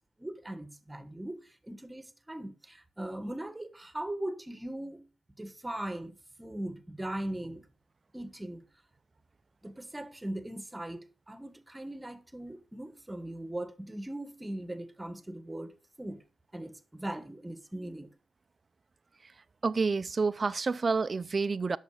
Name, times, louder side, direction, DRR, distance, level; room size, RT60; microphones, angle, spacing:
voice 1, 0.2-5.0 5.4-7.6 8.1-8.6 9.6-15.7 16.0-16.2 16.5-18.1, right 1 dB, 15° right, 1.4 m, -39 dB
voice 2, 19.2-21.8, right 4 dB, 45° right, 0.5 m, -29 dB
10.5 x 6.7 x 4.9 m
cardioid pair, 60°, 0 cm